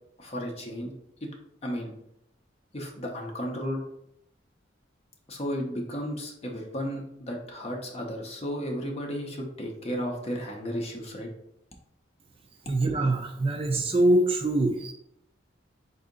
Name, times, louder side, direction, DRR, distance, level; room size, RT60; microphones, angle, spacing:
voice 1, 0.2-0.9 1.2-1.3 1.6-1.9 2.7-3.8 5.3-11.3, equal, 35° left, 1 dB, 0.7 m, -34 dB
voice 2, 12.7-14.9, right 1 dB, 30° right, 3 dB, 0.4 m, -24 dB
4.1 x 2.7 x 3.7 m, 0.77 s
head